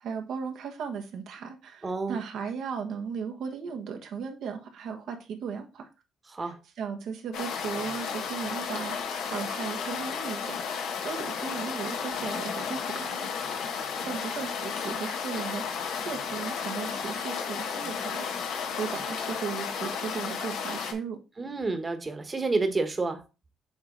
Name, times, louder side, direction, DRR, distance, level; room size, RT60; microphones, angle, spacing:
voice 1, 0.0-5.9 6.4-13.3 14.0-18.3 18.8-21.2, right 6 dB, 75° right, 1.3 m, -36 dB
voice 2, 1.8-2.2 6.3-6.6 13.9-14.1 21.4-23.2, right 3 dB, 30° right, 1.2 m, -29 dB
sound 1, 7.3-20.9, left 6 dB, 85° left, 1.1 m, -33 dB
7.9 x 3.3 x 3.8 m
cardioid pair, 90°, 0 cm